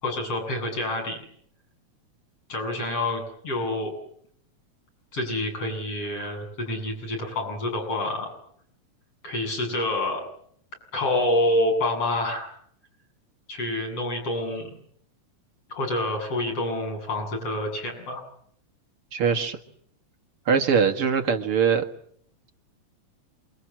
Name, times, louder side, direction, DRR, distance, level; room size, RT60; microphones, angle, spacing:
voice 1, 0.0-1.2 2.5-3.9 5.1-8.3 9.2-10.2 10.9-12.5 13.5-14.7 15.7-18.2, left 1 dB, 50° left, 2 dB, 9.0 m, -27 dB
voice 2, 19.1-19.6 20.5-21.9, right 6 dB, 50° right, 6 dB, 2.6 m, -22 dB
28.0 x 24.0 x 7.7 m, 0.66 s
omnidirectional pair, 3.4 m